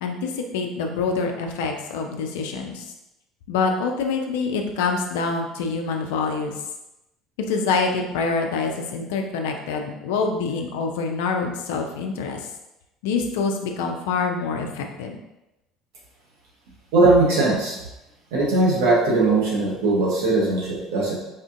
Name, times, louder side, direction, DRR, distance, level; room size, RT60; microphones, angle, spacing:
voice 1, 0.0-2.9 3.5-6.5 7.5-12.5 13.0-15.2, left 4 dB, 70° left, 3 dB, 0.4 m, -26 dB
voice 2, 16.9-17.8 18.3-21.1, right 2 dB, 65° right, -4 dB, 1.0 m, -19 dB
4.1 x 2.5 x 2.5 m, 0.94 s
figure-of-eight pair, 60°, 0 cm